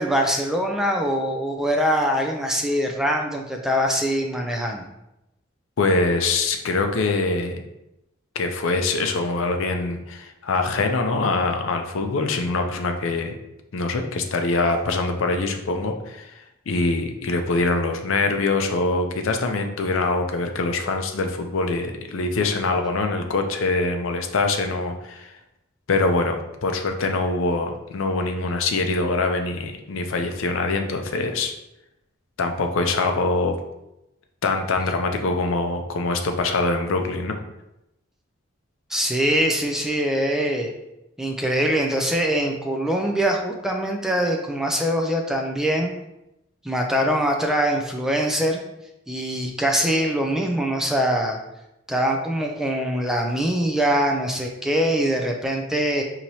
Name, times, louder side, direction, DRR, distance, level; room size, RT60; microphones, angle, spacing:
voice 1, 0.0-4.9 38.9-40.7 41.2-45.9 46.6-48.6 49.1-51.4 51.9-56.0, equal, ahead, 2 dB, 0.3 m, -23 dB
voice 2, 5.8-7.6 8.4-13.4 13.7-16.4 16.7-25.3 25.9-31.5 32.4-33.6 34.4-37.4, left 3 dB, 80° left, 5 dB, 0.5 m, -24 dB
4.6 x 2.9 x 2.7 m, 0.90 s
head